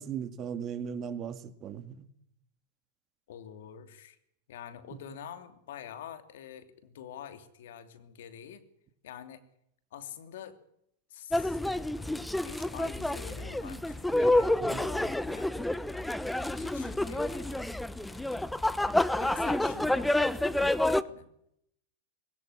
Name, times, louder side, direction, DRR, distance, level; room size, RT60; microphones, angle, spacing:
voice 1, 0.0-2.0 14.6-14.8, right 7 dB, 35° right, 2.0 m, -37 dB
voice 2, 3.3-4.2 4.5-8.6 9.0-9.4 9.9-10.6 11.1-11.7 12.4-15.5 16.5-17.7 19.2-21.3, left 9 dB, 75° left, 2.9 m, -46 dB
sound 1, 11.3-21.0, left 1 dB, 5° left, 0.9 m, -29 dB
Sliding door, 11.5-19.0, left 6 dB, 45° left, 4.6 m, -58 dB
20.0 x 17.5 x 9.9 m
hypercardioid pair, 120°, 0 cm